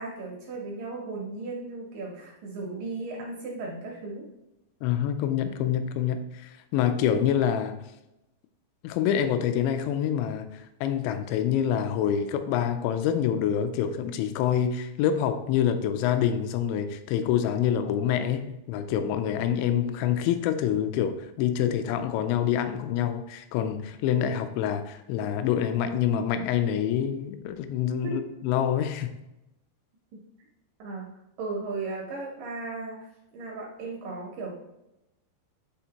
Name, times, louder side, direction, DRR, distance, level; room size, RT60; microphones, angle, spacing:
voice 1, 0.0-4.3 28.0-28.1 30.1-30.2 30.8-31.1 31.4-33.1 33.3-34.5, right 3 dB, 75° right, -2 dB, 2.0 m, -36 dB
voice 2, 4.8-7.8 8.8-29.1, left 9 dB, 90° left, 8 dB, 2.8 m, -26 dB
10.0 x 3.5 x 2.9 m, 0.92 s
omnidirectional pair, 5.1 m